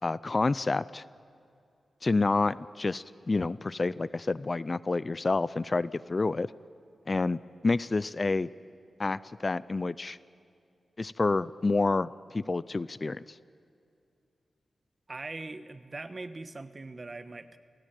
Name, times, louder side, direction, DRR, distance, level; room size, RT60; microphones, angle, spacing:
voice 1, 0.0-1.0 2.0-6.5 7.1-8.5 9.0-10.2 11.0-13.2, left 3 dB, 35° left, 18 dB, 0.5 m, -28 dB
voice 2, 15.1-17.6, right 3 dB, 35° right, 11 dB, 1.2 m, -41 dB
28.0 x 18.0 x 9.1 m, 2.4 s
cardioid pair, 75°, 0 cm